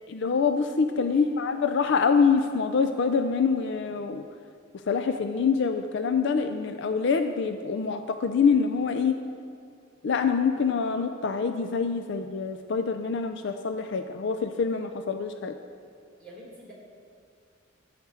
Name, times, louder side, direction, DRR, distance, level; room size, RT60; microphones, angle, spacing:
voice 1, 0.1-4.3 4.9-9.2 10.0-15.6, left 5 dB, 60° left, 7 dB, 0.4 m, -25 dB
voice 2, 0.9-1.6 16.2-16.7, equal, 5° left, -6 dB, 3.0 m, -47 dB
12.0 x 5.1 x 8.1 m, 2.2 s
head